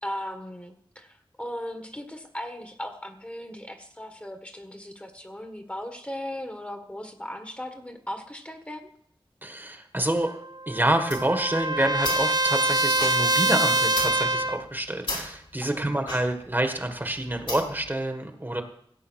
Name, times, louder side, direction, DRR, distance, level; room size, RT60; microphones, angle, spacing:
voice 1, 0.0-8.9 15.6-15.9, left 1 dB, 15° left, 6 dB, 1.7 m, -37 dB
voice 2, 9.4-10.3 10.7-18.6, right 1 dB, 20° right, 5 dB, 1.6 m, -27 dB
Trumpet, 10.3-14.6, right 2 dB, 45° right, 0.7 m, -25 dB
sound 1, 11.1-17.9, left 1 dB, 70° left, 5.5 m, -37 dB
16.0 x 8.3 x 6.4 m, 0.69 s
wide cardioid pair, 70°, 9 cm